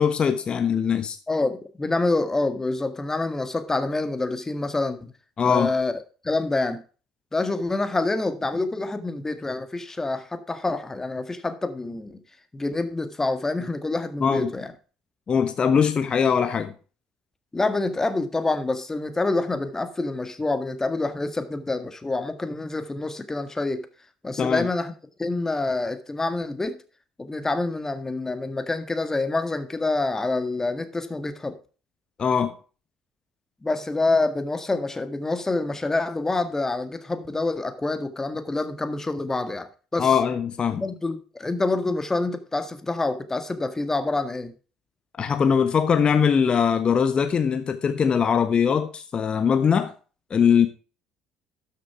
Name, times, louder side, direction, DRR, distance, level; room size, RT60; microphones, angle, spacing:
voice 1, 0.0-1.2 5.4-5.7 14.2-14.5 15.3-16.7 24.4-24.7 32.2-32.5 40.0-40.8 45.2-49.9 50.3-50.7, left 7 dB, 40° left, 1.2 m, -21 dB
voice 2, 1.3-5.1 5.4-6.8 7.3-12.2 12.5-14.7 17.5-23.9 24.2-24.9 25.2-26.8 27.2-31.6 33.6-40.2 40.8-44.5, left 2 dB, 20° left, 1.7 m, -27 dB
12.5 x 6.6 x 4.7 m
figure-of-eight pair, 55°, 3 cm